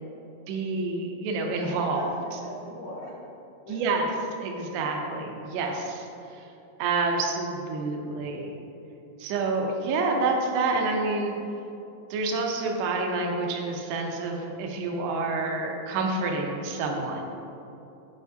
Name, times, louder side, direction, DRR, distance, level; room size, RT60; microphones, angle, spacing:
voice 1, 0.5-2.1 3.7-4.1 4.4-6.1 6.8-8.6 9.2-11.3 12.1-17.2, right 3 dB, 80° right, 1 dB, 2.6 m, -28 dB
voice 2, 1.6-3.1 3.6-4.1 16.8-17.2, left 1 dB, 75° left, -9 dB, 1.7 m, -41 dB
9.4 x 5.2 x 2.6 m, 2.8 s
omnidirectional pair, 5.0 m